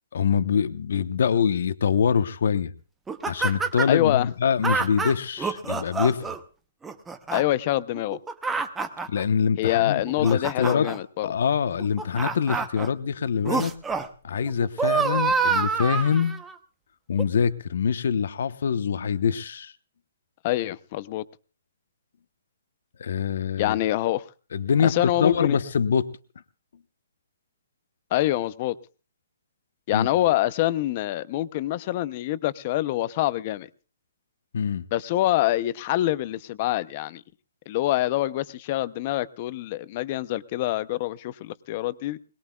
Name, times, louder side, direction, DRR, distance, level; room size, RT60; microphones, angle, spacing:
voice 1, 0.1-2.7 3.2-6.3 9.1-10.9 11.2-13.7 14.2-16.3 17.1-19.7 23.0-23.7 24.5-26.1 29.9-30.1 34.5-34.8, left 6 dB, 55° left, 13 dB, 1.0 m, -24 dB
sound 1, 3.1-4.0 4.6-6.4 6.8-7.4 8.0-9.2 9.9-11.0 11.8-12.9 13.4-14.1 14.4-16.5 17.2-17.3, right 5 dB, 5° right, 0.8 m, -27 dB
voice 2, 3.9-4.3 7.3-8.2 9.6-11.3 20.4-21.2 23.6-24.3 24.8-25.6 28.1-28.8 29.9-33.7 34.9-37.2 37.7-42.2, left 15 dB, 30° left, 17 dB, 0.6 m, -25 dB
22.0 x 20.0 x 2.3 m, 0.37 s
hypercardioid pair, 170°, 0 cm